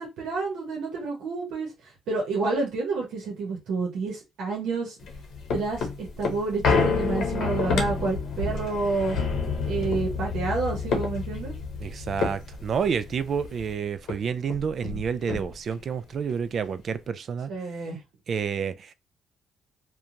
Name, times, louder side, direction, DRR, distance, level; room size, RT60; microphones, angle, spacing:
voice 1, 0.0-1.7 2.1-4.9 5.5-9.2 9.6-11.5 17.5-18.0, right 3 dB, 85° right, 0.9 m, -29 dB
sound 1, 5.0-13.7 14.1-14.2 14.4-15.8 16.3-16.4, left 4 dB, 70° left, 0.7 m, -29 dB
voice 2, 11.8-17.5 18.3-18.9, right 6 dB, 55° right, 0.3 m, -29 dB
2.9 x 2.2 x 2.5 m
cardioid pair, 90°, 0 cm